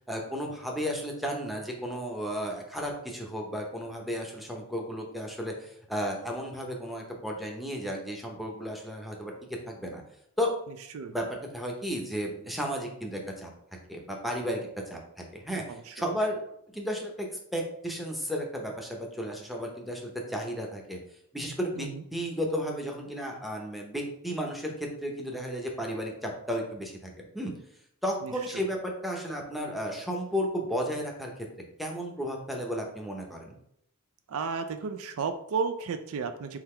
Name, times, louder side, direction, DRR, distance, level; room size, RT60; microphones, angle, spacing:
voice 1, 0.1-9.3 9.7-10.0 10.4-10.5 11.1-13.5 13.9-14.6 14.9-17.3 17.5-21.0 21.3-27.5 28.0-31.3 31.8-33.5, equal, ahead, 0 dB, 0.7 m, -33 dB
voice 2, 28.2-28.6 34.3-36.6, right 5 dB, 65° right, 8 dB, 0.4 m, -33 dB
3.8 x 2.8 x 4.3 m, 0.72 s
head